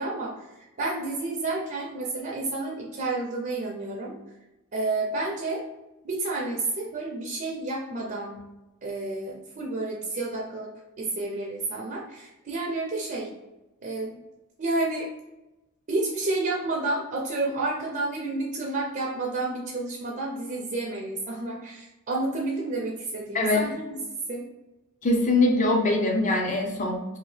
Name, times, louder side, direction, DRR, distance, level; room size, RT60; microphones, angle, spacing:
voice 1, 0.0-4.1 4.7-5.6 6.0-8.4 8.8-10.7 11.0-13.3 13.8-14.2 14.6-15.1 15.9-24.0 24.3-24.4, right 2 dB, 40° right, -2 dB, 0.5 m, -30 dB
voice 2, 25.0-27.2, left 2 dB, 35° left, 1 dB, 0.5 m, -23 dB
2.8 x 2.6 x 3.2 m, 1.0 s
head